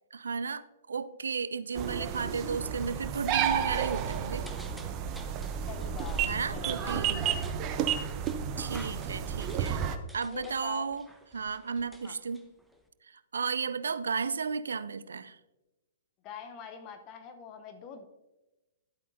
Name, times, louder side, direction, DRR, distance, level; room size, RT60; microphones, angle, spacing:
voice 1, 0.1-4.5 6.2-7.3 8.6-9.8 10.1-11.1 11.3-12.5 13.0-15.4, right 5 dB, 70° right, 15 dB, 0.4 m, -34 dB
sound 1, 1.8-10.0, right 8 dB, 30° right, 0.7 m, -32 dB
sound 2, 3.8-12.9, equal, ahead, 0.9 m, -53 dB
voice 2, 5.7-7.6 10.2-11.0 12.0-12.1 16.2-18.1, left 6 dB, 30° left, 7 dB, 0.8 m, -44 dB
11.5 x 8.4 x 2.7 m, 1.0 s
figure-of-eight pair, 115°, 0 cm